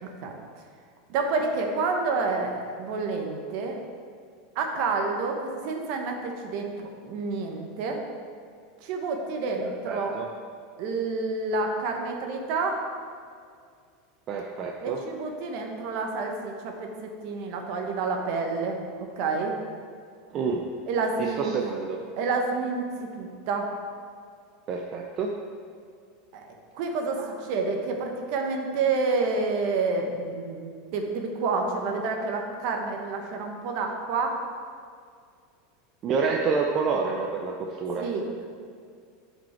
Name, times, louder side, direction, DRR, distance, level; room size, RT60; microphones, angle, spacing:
voice 1, 0.0-0.3 1.1-3.8 4.5-8.0 8.8-10.1 10.8-12.8 14.8-18.8 19.2-19.6 20.9-21.5 22.2-23.8 26.3-34.4 38.0-38.4, right 4 dB, 45° right, 3 dB, 1.1 m, -29 dB
voice 2, 9.6-10.3 14.3-15.0 20.3-20.7 21.2-22.1 24.7-25.4 27.2-27.3 36.0-38.1, right 5 dB, 30° right, 1 dB, 0.5 m, -28 dB
10.5 x 5.2 x 4.4 m, 2.2 s
supercardioid pair, 170°, 0 cm